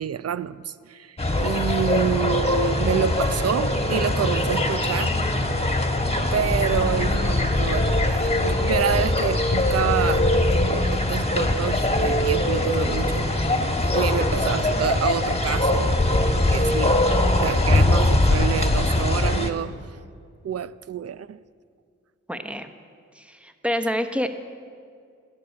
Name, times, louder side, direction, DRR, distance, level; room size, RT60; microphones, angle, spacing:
voice 1, 0.0-5.1 6.3-10.3 10.5-13.3 13.9-16.0 16.5-17.0 17.4-19.7 20.4-21.4, right 9 dB, 55° right, 16 dB, 0.5 m, -28 dB
sound 1, 1.2-19.5, left 1 dB, 20° left, 1.5 m, -22 dB
voice 2, 22.3-22.7 23.1-24.3, equal, 5° right, 8 dB, 1.2 m, -27 dB
12.5 x 8.6 x 8.6 m, 2.2 s
cardioid pair, 50°, 30 cm